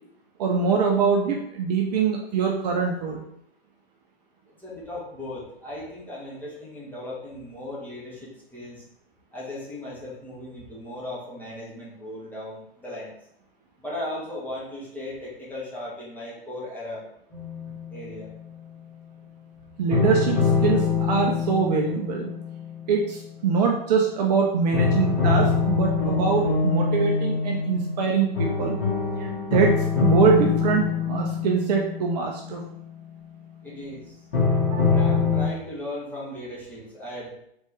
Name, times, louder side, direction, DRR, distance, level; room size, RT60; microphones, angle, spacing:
voice 1, 0.4-3.2 19.8-22.3 22.9-28.8 29.2-32.6 34.7-34.9, right 5 dB, 45° right, 1 dB, 0.7 m, -23 dB
voice 2, 4.6-8.8 9.3-13.1 13.8-17.0 17.9-18.3 33.6-34.1 34.9-37.3, left 1 dB, 5° left, -7 dB, 1.6 m, -37 dB
sound 1, 17.3-18.5 19.9-23.9 24.7-33.5 34.3-35.5, left 5 dB, 65° left, 1.6 m, -25 dB
4.1 x 3.5 x 3.4 m, 0.74 s
hypercardioid pair, 120°, 30 cm